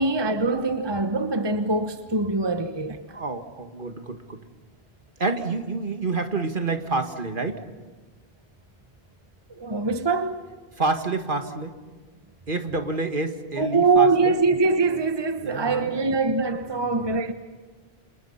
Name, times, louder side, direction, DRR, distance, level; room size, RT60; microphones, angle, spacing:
voice 1, 0.0-3.0 9.5-10.4 13.6-17.3, right 3 dB, 25° right, 1.2 m, -23 dB
voice 2, 3.1-4.4 5.2-7.6 10.8-11.7 12.5-14.3 15.4-16.1 16.7-17.3, right 3 dB, 55° right, 2.0 m, -28 dB
28.5 x 28.5 x 5.8 m
omnidirectional pair, 1.1 m